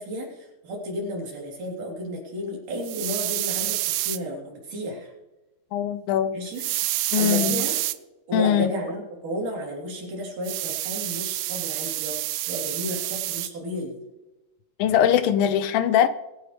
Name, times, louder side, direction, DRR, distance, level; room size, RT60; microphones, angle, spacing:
voice 1, 0.0-3.8 4.0-5.1 6.3-6.6 7.2-7.7 8.3-12.1 12.5-13.9, equal, 60° right, -1 dB, 4.9 m, -32 dB
sound 1, 2.8-4.2 6.6-8.0 10.4-13.5, right 17 dB, 90° right, 1.8 m, -28 dB
voice 2, 5.7-6.3 7.1-7.6 8.3-8.7 14.8-16.1, left 9 dB, 80° left, 13 dB, 2.3 m, -21 dB
23.0 x 9.9 x 3.3 m, 1.0 s
omnidirectional pair, 4.2 m